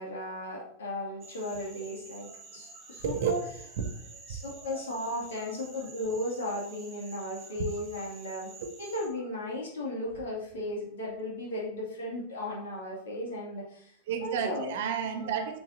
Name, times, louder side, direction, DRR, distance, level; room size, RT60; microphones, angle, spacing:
voice 1, 0.0-3.4 4.3-8.5 8.8-13.9 14.2-14.7 15.1-15.3, left 1 dB, 65° left, -4 dB, 2.4 m, -36 dB
sound 1, 1.2-9.1, right 3 dB, 25° right, 2.4 m, -50 dB
voice 2, 2.7-3.4 3.8-4.8 5.3-5.4 8.6-8.7 9.9-10.0 14.1-15.6, right 7 dB, 55° right, 5 dB, 1.3 m, -33 dB
9.2 x 7.3 x 2.8 m, 0.65 s
figure-of-eight pair, 85°, 0 cm